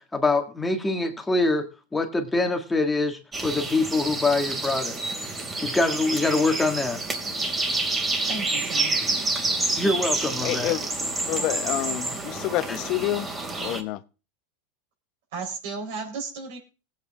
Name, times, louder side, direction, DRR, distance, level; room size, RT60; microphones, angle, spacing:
voice 1, 0.1-5.0 5.6-7.1 9.8-10.8, left 2 dB, 10° left, 1.9 m, -24 dB
sound 1, 3.3-13.8, right 2 dB, 20° right, 2.6 m, -28 dB
voice 2, 8.3-9.0 15.3-16.6, right 4 dB, 75° right, 4.1 m, -34 dB
voice 3, 10.4-10.9 11.3-13.3 13.6-14.0, left 15 dB, 50° left, 0.9 m, -28 dB
18.0 x 8.4 x 3.6 m
supercardioid pair, 120°, 0 cm